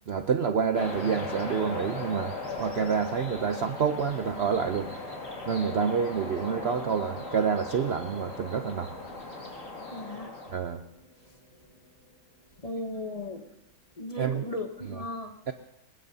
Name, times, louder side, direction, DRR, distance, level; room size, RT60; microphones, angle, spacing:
voice 1, 0.1-4.9 5.5-9.0 10.5-10.8 14.2-14.5 14.9-15.0 15.5-15.6, right 6 dB, 60° right, 8 dB, 0.6 m, -28 dB
sound 1, 0.7-10.6, left 2 dB, 50° left, 2.7 m, -38 dB
sound 2, 6.3-14.5, left 1 dB, 85° left, 5.1 m, -53 dB
voice 2, 9.9-10.3 12.6-13.4 14.0-15.4, left 1 dB, 30° left, 4 dB, 0.7 m, -36 dB
22.0 x 19.5 x 2.7 m, 0.85 s
omnidirectional pair, 1.7 m